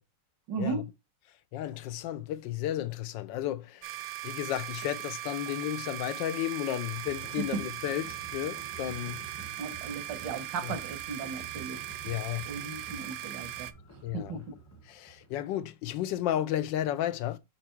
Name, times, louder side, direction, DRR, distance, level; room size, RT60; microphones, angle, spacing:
voice 1, 0.5-0.9 7.5-7.6 9.6-11.8 12.5-13.7 14.1-14.6, right 4 dB, 90° right, 1.8 m, -36 dB
voice 2, 1.5-3.9 4.2-9.2 10.6-10.7 12.0-12.5 14.0-14.4 14.9-17.4, left 12 dB, 90° left, 1.3 m, -33 dB
sound 1, 3.8-13.7, right 14 dB, 70° right, 0.9 m, -39 dB
sound 2, 6.9-15.4, right 3 dB, 15° left, 0.5 m, -49 dB
6.1 x 4.0 x 4.5 m
omnidirectional pair, 1.9 m